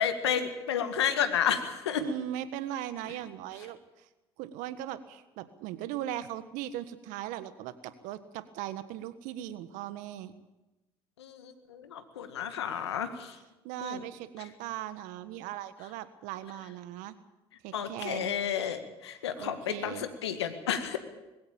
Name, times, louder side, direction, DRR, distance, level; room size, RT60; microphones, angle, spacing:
voice 1, 0.0-2.0 11.2-13.4 13.8-14.0 17.7-21.0, left 8 dB, 90° left, 9 dB, 1.8 m, -31 dB
voice 2, 2.0-4.1 4.4-10.3 13.6-17.2 17.6-18.3 19.4-20.1, right 12 dB, 70° right, 13 dB, 1.5 m, -39 dB
21.0 x 16.5 x 8.7 m, 1.0 s
hypercardioid pair, 65°, 14 cm